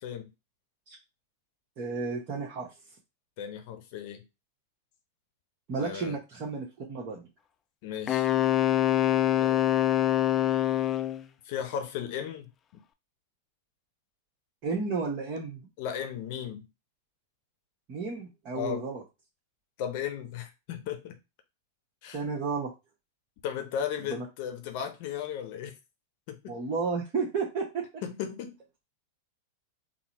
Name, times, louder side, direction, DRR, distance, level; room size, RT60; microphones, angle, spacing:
voice 1, 1.8-2.7 5.7-7.3 14.6-15.6 17.9-19.0 22.1-22.7 24.1-24.2 26.5-28.0, right 4 dB, 40° right, 1.0 m, -32 dB
voice 2, 3.4-4.2 5.8-6.2 7.8-8.3 9.4-9.6 11.4-12.5 15.8-16.7 18.5-18.8 19.8-21.2 22.0-22.2 23.4-25.8 26.3-26.6 28.0-28.5, left 9 dB, 55° left, 0.7 m, -35 dB
Wind instrument woodwind instrument, 8.1-11.2, left 12 dB, 25° left, 0.4 m, -24 dB
3.7 x 2.0 x 2.9 m
figure-of-eight pair, 95°, 0 cm